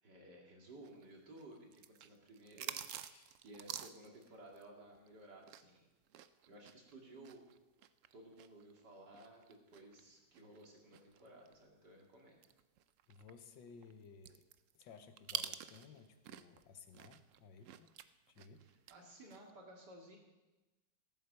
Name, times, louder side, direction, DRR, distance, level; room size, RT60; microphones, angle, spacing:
voice 1, 0.0-2.8 3.4-5.9 6.5-7.4 8.1-12.4 18.9-20.2, right 1 dB, 65° right, 0 dB, 3.0 m, -56 dB
sound 1, 0.8-5.8 6.1-11.6 12.0-12.1 12.4-16.6 16.9-19.0 19.3-19.5, right 10 dB, 85° right, 0.6 m, -48 dB
voice 2, 2.9-3.4 13.1-14.5 14.7-18.0 18.3-18.7, left 5 dB, 85° left, 9 dB, 1.7 m, -58 dB
14.5 x 8.9 x 6.6 m, 1.1 s
omnidirectional pair, 2.0 m